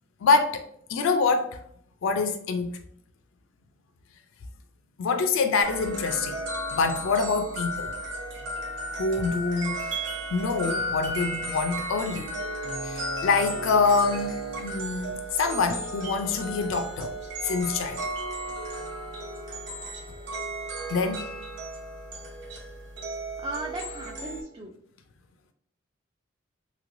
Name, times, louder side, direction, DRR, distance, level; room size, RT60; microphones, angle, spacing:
voice 1, 0.2-0.6 0.9-1.6 2.0-2.7 5.0-6.4 6.7-7.9 8.9-9.8 10.3-12.3 12.8-17.1 17.4-18.0 20.9-21.2, left 4 dB, 80° left, 0.4 m, -25 dB
sound 1, 5.6-24.4, right 1 dB, 65° right, 0.9 m, -34 dB
voice 2, 23.4-24.7, right 2 dB, 25° right, 0.3 m, -36 dB
3.1 x 3.0 x 2.5 m
head